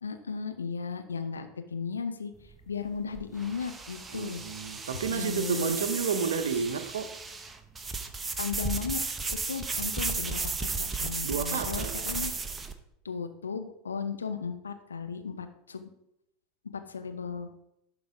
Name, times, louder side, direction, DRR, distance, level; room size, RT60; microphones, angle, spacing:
voice 1, 0.0-4.4 5.1-5.8 8.4-9.0 9.5-12.3 13.0-15.9 16.7-17.5, left 5 dB, 80° left, 0.7 m, -35 dB
Dry Erase Fast, 2.4-12.7, right 4 dB, 20° right, 0.9 m, -34 dB
voice 2, 4.1-7.2 11.2-12.0, right 6 dB, 75° right, 0.8 m, -31 dB
11.5 x 4.0 x 4.9 m
figure-of-eight pair, 80°, 0 cm